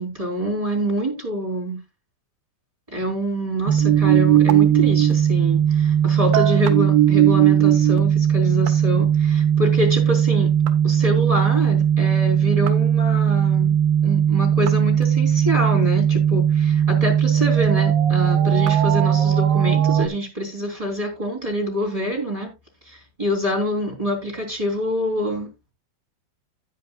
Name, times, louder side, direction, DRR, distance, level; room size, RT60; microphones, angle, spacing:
voice 1, 0.0-1.8 2.9-10.5 10.8-13.7 14.0-22.5 22.8-25.5, equal, 10° right, 2.7 m, -26 dB
sound 1, 3.7-20.1, right 9 dB, 70° right, 2.2 m, -18 dB
13.5 x 9.6 x 2.3 m
omnidirectional pair, 5.6 m